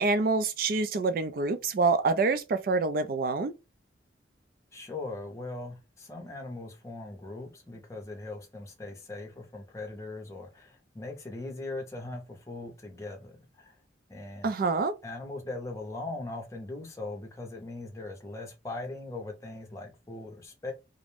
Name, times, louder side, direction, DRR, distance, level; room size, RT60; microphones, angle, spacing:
voice 1, 0.0-3.5 14.4-14.9, right 3 dB, 50° right, 0.3 m, -26 dB
voice 2, 4.7-13.7 14.1-14.5 15.0-20.7, left 2 dB, 15° left, 0.6 m, -40 dB
2.5 x 2.1 x 3.2 m
head